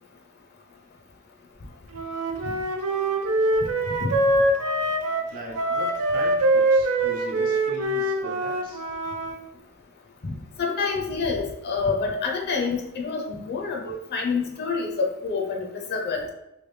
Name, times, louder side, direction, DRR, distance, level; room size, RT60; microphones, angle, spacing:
Wind instrument woodwind instrument, 1.9-9.4, right 1 dB, 80° right, 0.4 m, -24 dB
voice 1, 5.3-8.8, right 1 dB, 40° right, -2 dB, 1.0 m, -39 dB
voice 2, 10.2-16.2, left 4 dB, 50° left, 1 dB, 0.5 m, -27 dB
3.2 x 2.5 x 3.1 m, 0.86 s
head